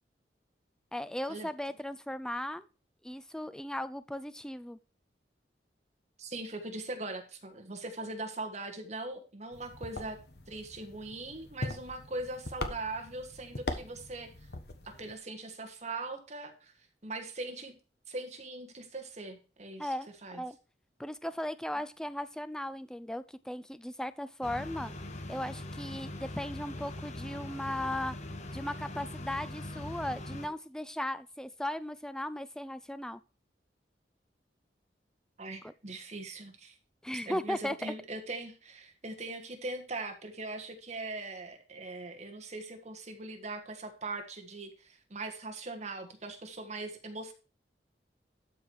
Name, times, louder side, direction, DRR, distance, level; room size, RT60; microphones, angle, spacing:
voice 1, 0.9-2.6 3.0-4.8 19.8-20.6 21.0-24.9 25.3-28.2 28.5-33.2 35.6-35.7 37.0-37.9, left 1 dB, 5° left, 14 dB, 0.4 m, -37 dB
voice 2, 6.2-10.2 10.5-14.5 14.8-16.7 17.0-17.7 18.1-19.9 20.2-20.4 35.4-36.8 37.3-47.3, right 2 dB, 40° right, 4 dB, 1.5 m, -41 dB
sound 1, 9.5-15.1, left 2 dB, 65° left, 1.3 m, -41 dB
sound 2, 24.4-30.5, left 1 dB, 40° left, 1.1 m, -41 dB
12.5 x 4.7 x 4.7 m, 0.35 s
head